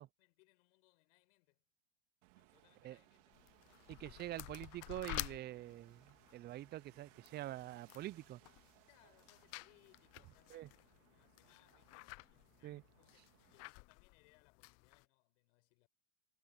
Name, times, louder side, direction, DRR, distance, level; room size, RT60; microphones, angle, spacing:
voice 1, 0.2-1.6 2.3-3.4 8.8-15.9, left 28 dB, 65° left, 4.9 m, -72 dB
sound 1, 2.2-13.7, right 23 dB, 65° right, 2.9 m, -69 dB
sound 2, 3.3-15.1, left 24 dB, 40° left, 0.6 m, -52 dB
voice 2, 3.9-8.4 10.5-10.7 12.6-12.8, right 14 dB, 25° right, 0.5 m, -46 dB
hypercardioid pair, 105°, 40 cm